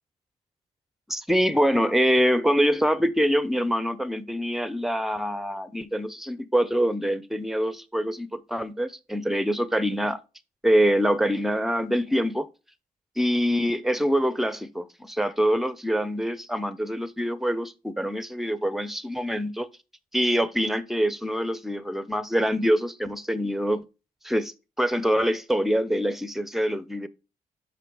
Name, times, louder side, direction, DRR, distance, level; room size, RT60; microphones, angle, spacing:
voice 1, 1.1-10.2 10.6-12.5 13.2-19.7 20.1-23.8 24.2-27.1, equal, ahead, 0.7 m, -25 dB
5.8 x 5.5 x 4.7 m
cardioid pair, 70°, 15 cm